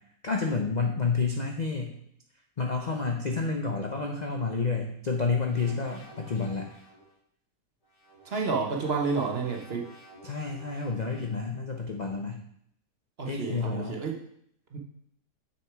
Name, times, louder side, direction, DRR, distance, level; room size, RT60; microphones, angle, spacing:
voice 1, 0.2-1.9 2.6-6.7 10.2-12.4 13.3-14.0, left 4 dB, 45° left, 2 dB, 0.5 m, -29 dB
sound 1, 5.5-7.1 7.8-11.5, right 1 dB, 90° left, 3.4 m, -51 dB
voice 2, 8.2-9.8 13.2-14.2 14.7-14.8, right 4 dB, 45° right, 0 dB, 1.1 m, -30 dB
6.8 x 6.3 x 4.7 m, 0.70 s
omnidirectional pair, 1.7 m